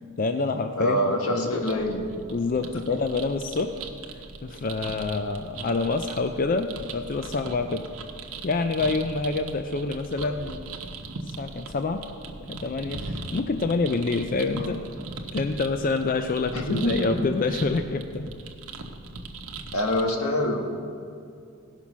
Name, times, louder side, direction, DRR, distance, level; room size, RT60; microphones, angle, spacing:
voice 1, 0.2-1.6 2.3-3.8 4.4-7.9 8.4-10.7 11.3-12.0 12.5-14.8 15.3-18.3, left 3 dB, 40° left, 7 dB, 0.4 m, -27 dB
voice 2, 0.8-2.0 10.2-10.3 14.6-14.7 16.5-17.3 19.7-20.6, left 1 dB, 85° left, 1 dB, 1.6 m, -26 dB
sound 1, 1.7-20.1, right 3 dB, 75° right, 1.0 m, -39 dB
17.0 x 5.7 x 6.0 m, 2.4 s
head